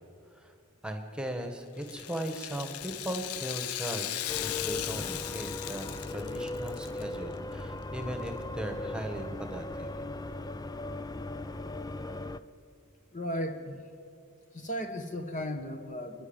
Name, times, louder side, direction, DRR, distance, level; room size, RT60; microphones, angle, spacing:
voice 1, 0.8-9.9, right 1 dB, 5° right, 5 dB, 1.5 m, -38 dB
Rattle (instrument), 1.8-7.0 7.3-7.4 8.3-8.4, left 12 dB, 80° left, 0.7 m, -37 dB
sound 1, 4.3-12.4, left 2 dB, 15° left, 0.5 m, -38 dB
voice 2, 13.1-13.8 14.5-16.3, equal, 35° left, 6 dB, 1.2 m, -35 dB
28.5 x 11.0 x 9.0 m, 2.4 s
head